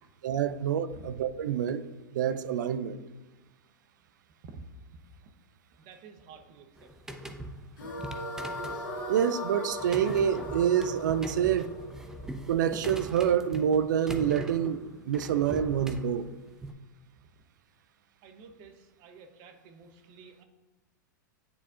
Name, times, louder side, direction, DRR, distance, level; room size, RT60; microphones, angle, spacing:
voice 1, 0.2-1.8 2.1-3.0 9.1-11.7 12.5-16.3, right 9 dB, 70° right, 0.4 m, -27 dB
voice 2, 5.8-6.9 18.2-20.4, right 5 dB, 45° right, 0.9 m, -51 dB
sound 1, 6.8-16.7, right 1 dB, 5° right, 0.5 m, -42 dB
sound 2, 7.8-13.0, left 1 dB, 90° left, 1.5 m, -39 dB
9.6 x 4.1 x 2.4 m
hypercardioid pair, 110°, 10 cm